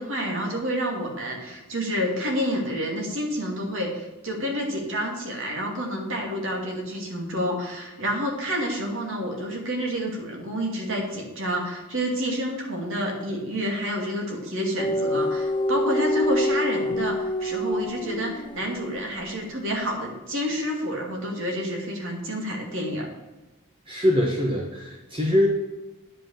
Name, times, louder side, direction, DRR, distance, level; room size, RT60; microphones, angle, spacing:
voice 1, 0.0-23.1, equal, 65° right, 0 dB, 2.7 m, -29 dB
sound 1, 14.8-18.8, left 1 dB, 25° left, 0.6 m, -26 dB
voice 2, 23.9-25.5, left 1 dB, 25° right, -1 dB, 1.3 m, -23 dB
9.5 x 5.8 x 7.4 m, 1.1 s
head